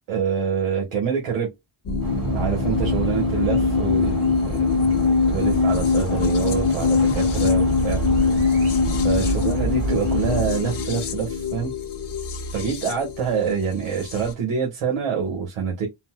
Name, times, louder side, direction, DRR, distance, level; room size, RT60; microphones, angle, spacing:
voice 1, 0.1-1.5 2.3-4.6 5.3-8.0 9.0-11.7 12.5-15.9, right 6 dB, 85° right, 1.3 m, -26 dB
sound 1, 1.9-14.3, left 4 dB, 55° left, 1.0 m, -23 dB
sound 2, 2.0-10.4, right 2 dB, 45° right, 2.2 m, -29 dB
4.0 x 2.2 x 2.2 m
wide cardioid pair, 135°, 50 cm